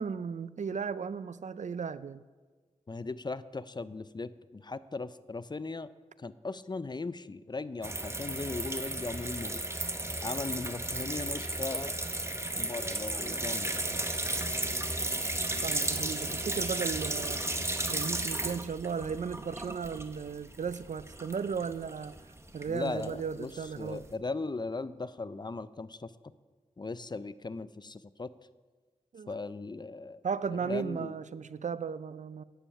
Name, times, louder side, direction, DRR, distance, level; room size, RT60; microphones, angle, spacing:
voice 1, 0.0-2.2 12.6-12.7 15.6-17.4 17.9-22.2 22.5-24.0 29.1-29.3 30.2-32.4, right 6 dB, 65° right, 0.4 m, -35 dB
voice 2, 2.9-5.9 6.2-9.6 10.2-11.9 12.6-13.8 22.7-23.5 23.8-26.1 26.8-28.3 29.3-30.2 30.6-31.2, left 3 dB, 35° left, 0.4 m, -38 dB
sound 1, 7.8-24.1, right 1 dB, 20° right, 0.8 m, -34 dB
10.0 x 7.1 x 5.8 m
cardioid pair, 45°, 13 cm